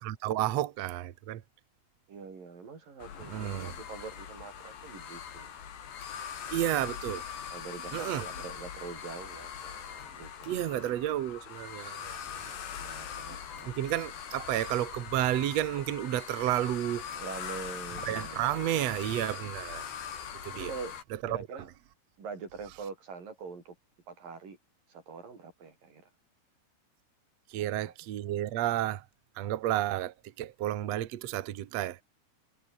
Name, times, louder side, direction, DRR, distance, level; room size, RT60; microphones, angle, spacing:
voice 1, 0.0-1.4 3.2-3.7 6.5-7.2 7.9-8.2 10.5-12.2 12.4-12.6 13.6-17.0 18.0-19.8 20.4-20.7 27.5-29.0 29.4-32.0, right 13 dB, 80° right, 1.5 m, -31 dB
voice 2, 2.1-5.5 6.5-6.9 7.5-10.6 12.8-13.7 17.1-18.6 20.5-21.0 21.3-21.7 22.2-23.8 24.1-24.6 24.9-26.1 27.6-27.9, right 5 dB, 50° right, 6.9 m, -44 dB
sound 1, 3.0-21.0, left 8 dB, 75° left, 5.5 m, -42 dB
omnidirectional pair, 5.0 m